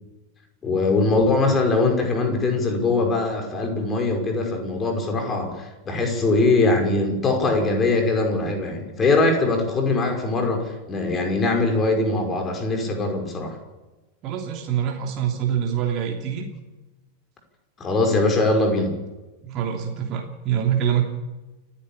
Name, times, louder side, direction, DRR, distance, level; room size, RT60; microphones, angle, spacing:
voice 1, 0.6-13.6 17.8-19.0, left 3 dB, 20° left, 3 dB, 5.6 m, -22 dB
voice 2, 14.2-16.5 19.4-21.0, right 9 dB, 35° right, 1 dB, 3.1 m, -25 dB
29.0 x 10.5 x 8.9 m, 1.1 s
figure-of-eight pair, 90°, 0 cm